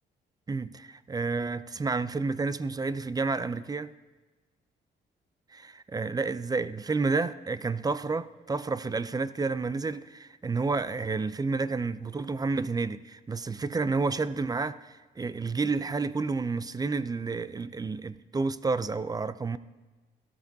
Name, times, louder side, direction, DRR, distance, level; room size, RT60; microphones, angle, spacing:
voice 1, 0.5-3.9 5.5-19.6, right 4 dB, 20° right, 0.4 m, -30 dB
15.5 x 13.0 x 2.7 m
cardioid pair, 90°, 20 cm